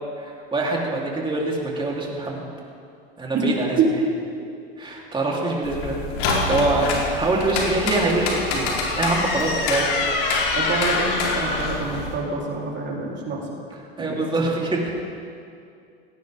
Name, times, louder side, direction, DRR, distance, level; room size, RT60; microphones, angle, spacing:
voice 1, 0.2-2.4 3.2-3.8 4.8-6.0 6.4-9.9 14.0-14.8, right 2 dB, 15° right, -3 dB, 3.8 m, -24 dB
sound 1, 5.6-12.1, left 3 dB, 60° left, 4.3 m, -25 dB
voice 2, 10.6-13.6 14.0-14.1, right 3 dB, 35° right, -3 dB, 3.9 m, -28 dB
18.0 x 18.0 x 3.8 m, 2.4 s
hypercardioid pair, 95°, 30 cm